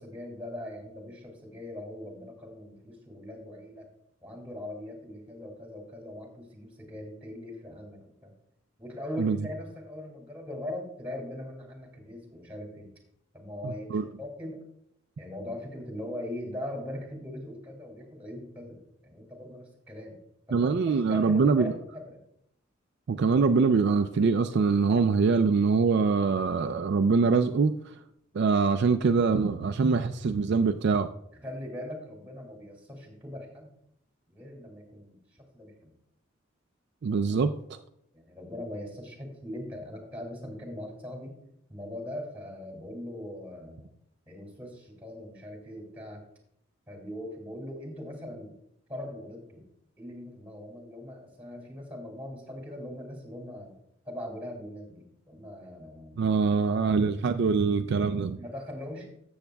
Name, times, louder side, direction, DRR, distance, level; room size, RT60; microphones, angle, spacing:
voice 1, 0.0-3.9 4.2-8.3 8.8-12.9 13.3-14.6 15.2-20.2 20.5-20.6 20.8-22.2 31.3-33.7 34.3-35.9 38.1-41.4 41.7-43.9 44.3-46.2 46.9-48.5 48.9-49.6 50.0-53.7 54.1-56.4 58.4-59.1, left 1 dB, 10° right, 1 dB, 2.2 m, -40 dB
voice 2, 13.6-14.1 20.5-21.7 23.1-27.7 28.3-31.1 37.0-37.8 56.2-58.4, right 5 dB, 55° right, 8 dB, 0.4 m, -24 dB
13.5 x 7.2 x 2.3 m, 0.73 s
head